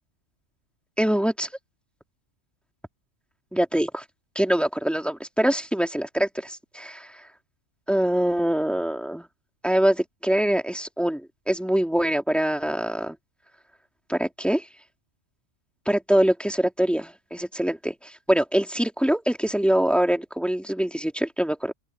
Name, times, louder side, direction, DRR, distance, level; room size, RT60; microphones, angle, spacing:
voice 1, 1.0-1.5 3.5-4.0 4.3-7.2 7.9-9.3 9.6-13.2 14.1-14.7 15.9-21.7, right 1 dB, ahead, 2.4 m, -24 dB
open air
omnidirectional pair, 1.3 m